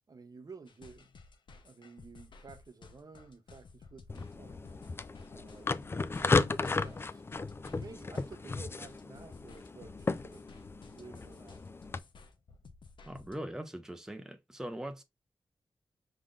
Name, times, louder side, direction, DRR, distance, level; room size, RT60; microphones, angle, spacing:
voice 1, 0.1-1.1 1.6-4.8 5.3-7.2 7.7-10.4 10.9-11.6, right 4 dB, 45° right, 0.7 m, -52 dB
sound 1, 0.7-13.4, left 4 dB, 65° left, 0.7 m, -55 dB
sound 2, 4.1-12.0, left 3 dB, 25° left, 0.3 m, -34 dB
voice 2, 13.1-15.0, right 1 dB, 5° right, 0.6 m, -41 dB
5.0 x 3.8 x 2.4 m
wide cardioid pair, 95°, 9 cm